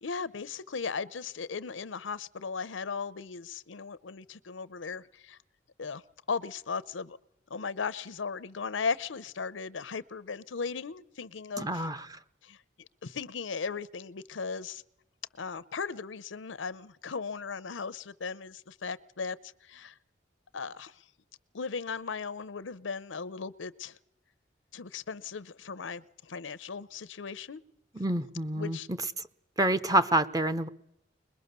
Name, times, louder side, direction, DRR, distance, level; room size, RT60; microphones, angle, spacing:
voice 1, 0.0-5.4 5.8-6.0 6.3-7.2 7.5-11.9 12.4-12.6 13.0-14.8 15.4-19.4 19.6-19.9 20.5-20.9 21.5-24.0 24.7-27.6 28.6-28.9, left 5 dB, 90° left, 0.7 m, -37 dB
voice 2, 11.6-12.2 27.9-28.8 29.6-30.7, right 1 dB, 20° right, 0.8 m, -27 dB
22.0 x 21.0 x 6.8 m
head